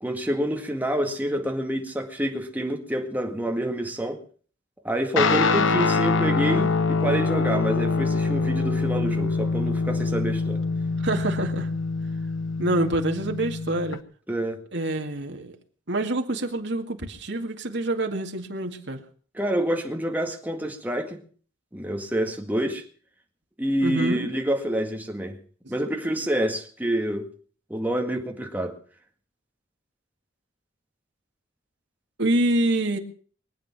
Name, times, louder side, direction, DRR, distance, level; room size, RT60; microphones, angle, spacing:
voice 1, 0.0-4.2 4.8-10.6 14.3-14.6 19.3-21.2 21.7-22.8 23.6-25.4 25.7-27.3 27.7-28.8, right 1 dB, 10° right, 2.0 m, -27 dB
Guitar, 5.2-14.0, left 4 dB, 75° left, 1.0 m, -24 dB
voice 2, 11.0-11.7 12.6-14.0 14.7-15.6 15.9-19.0 23.8-24.3 25.8-25.9 26.4-26.5 32.2-33.0, right 1 dB, 60° right, 2.1 m, -26 dB
24.0 x 8.8 x 6.0 m
head